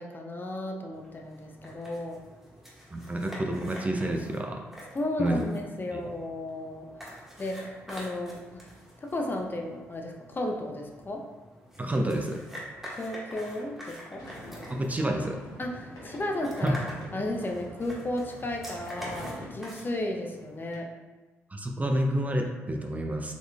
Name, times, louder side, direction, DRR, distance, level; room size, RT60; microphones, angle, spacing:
voice 1, 0.0-2.2 4.9-7.6 7.9-8.6 9.0-11.2 13.0-14.3 15.6-16.8 17.1-20.9, left 1 dB, 30° left, 1 dB, 0.6 m, -34 dB
sound 1, 0.9-20.8, equal, 5° right, 1.4 m, -46 dB
voice 2, 2.9-4.6 5.2-5.5 5.9-6.1 11.8-12.4 14.7-15.4 16.6-16.8 21.5-23.3, right 1 dB, 20° right, 3 dB, 0.4 m, -29 dB
sound 2, 14.2-19.5, equal, 60° left, 1.0 m, -45 dB
3.9 x 3.0 x 2.2 m, 1.2 s
hypercardioid pair, 40°, 7 cm